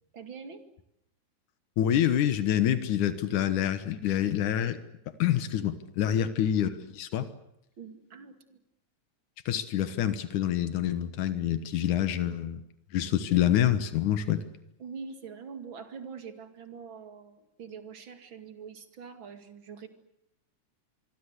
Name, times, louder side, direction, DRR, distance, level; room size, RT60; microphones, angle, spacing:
voice 1, 0.1-0.6 6.1-6.2 7.8-8.6 14.8-19.9, right 6 dB, 45° right, 8 dB, 2.9 m, -44 dB
voice 2, 1.8-4.8 5.2-7.3 9.5-12.6 12.9-14.4, left 10 dB, 90° left, 12 dB, 2.8 m, -27 dB
25.5 x 23.5 x 8.2 m, 0.79 s
omnidirectional pair, 3.4 m